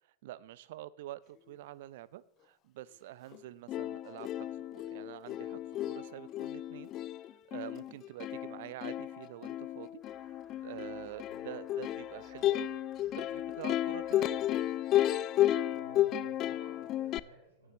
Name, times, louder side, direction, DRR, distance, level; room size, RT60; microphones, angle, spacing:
voice 1, 0.2-6.9 7.5-10.0 10.6-12.8 13.1-14.3, right 14 dB, 55° right, 19 dB, 0.4 m, -47 dB
Plucked string instrument, 3.3-3.4 3.7-17.2, left 13 dB, 35° left, 0.3 m, -33 dB
sound 1, 10.0-14.9, left 1 dB, 15° left, 2.9 m, -63 dB
voice 2, 15.7-17.7, right 1 dB, 70° right, -1 dB, 4.9 m, -56 dB
18.0 x 9.6 x 3.1 m, 0.85 s
figure-of-eight pair, 90°, 0 cm